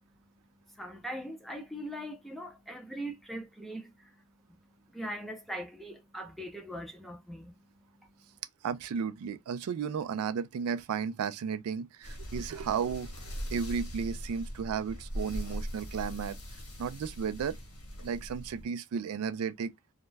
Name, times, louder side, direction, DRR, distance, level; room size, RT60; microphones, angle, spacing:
voice 1, 0.7-4.1 4.9-7.5 8.0-8.1, equal, ahead, 0.5 m, -41 dB
voice 2, 8.6-16.4 16.8-17.6 18.0-19.7, right 6 dB, 75° right, 0.3 m, -34 dB
sound 1, 12.0-18.7, equal, 85° left, 1.1 m, -40 dB
2.4 x 2.1 x 3.1 m
head